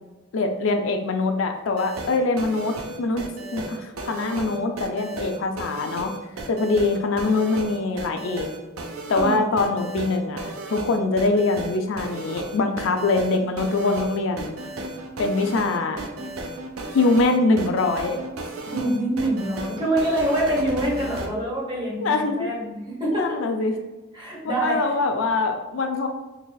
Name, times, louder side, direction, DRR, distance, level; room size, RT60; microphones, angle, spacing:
voice 1, 0.3-6.1 6.5-8.5 9.1-14.5 15.2-16.0 16.9-18.2 22.0-22.5 23.1-23.7 24.4-26.1, left 3 dB, 65° left, 5 dB, 0.4 m, -23 dB
sound 1, 1.7-21.3, right 2 dB, 90° right, 0.6 m, -34 dB
voice 2, 18.7-23.4 24.1-24.8, right 1 dB, 25° right, -5 dB, 1.1 m, -25 dB
3.9 x 3.0 x 2.3 m, 1.2 s
head